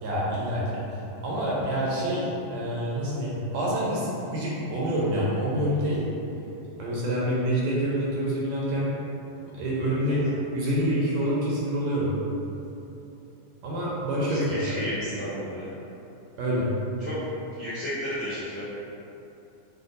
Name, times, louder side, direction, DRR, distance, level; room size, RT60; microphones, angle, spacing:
voice 1, 0.0-0.6 1.2-6.0 6.8-8.9 9.5-10.2 10.5-12.1 13.6-14.8 16.4-16.7, equal, 75° right, -6 dB, 1.8 m, -27 dB
voice 2, 14.3-15.7 17.0-17.2 17.5-18.6, left 1 dB, 60° left, -15 dB, 0.8 m, -33 dB
6.4 x 2.3 x 2.5 m, 2.8 s
omnidirectional pair, 3.4 m